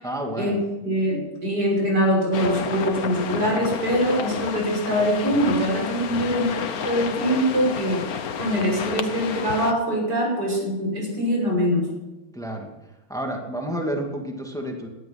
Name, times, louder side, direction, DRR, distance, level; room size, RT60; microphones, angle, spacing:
voice 1, 0.0-0.6 6.1-6.3 8.8-8.9 12.3-12.7 13.1-14.9, right 1 dB, ahead, 1 dB, 2.1 m, -30 dB
voice 2, 0.8-11.9, equal, 55° right, -1 dB, 6.7 m, -23 dB
sound 1, 2.3-9.7, left 7 dB, 55° left, 1.4 m, -30 dB
18.0 x 12.0 x 5.9 m, 1.0 s
omnidirectional pair, 2.1 m